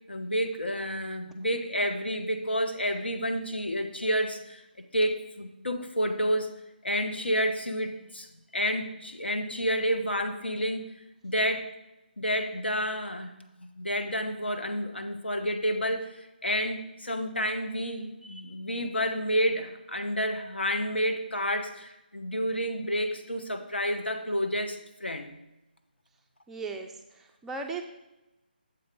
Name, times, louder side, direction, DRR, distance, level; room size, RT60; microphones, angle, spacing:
voice 1, 0.1-4.6 4.9-6.5 6.8-8.3 8.5-10.8 11.2-11.7 12.2-13.3 13.6-25.4, equal, 85° left, 6 dB, 1.0 m, -30 dB
voice 2, 26.5-27.8, right 4 dB, 5° right, 2 dB, 0.3 m, -37 dB
7.1 x 4.3 x 5.3 m, 0.95 s
figure-of-eight pair, 150°, 6 cm